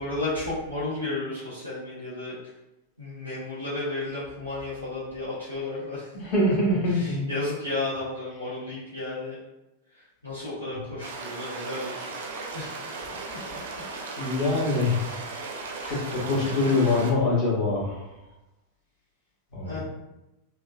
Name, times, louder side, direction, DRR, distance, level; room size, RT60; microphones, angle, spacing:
voice 1, 0.0-2.4 3.0-6.1 6.9-9.4 9.9-12.1 12.5-12.8 15.8-16.0 19.7-19.8, left 2 dB, 90° left, -12 dB, 0.8 m, -33 dB
voice 2, 6.1-7.2 10.7-10.9 13.6-13.7 14.2-15.1 15.8-18.0 19.5-19.8, left 2 dB, 40° left, -4 dB, 1.0 m, -24 dB
sound 1, 11.0-17.1, right 3 dB, 60° right, 0.4 m, -36 dB
3.5 x 2.1 x 2.3 m, 0.97 s
figure-of-eight pair, 90°, 0 cm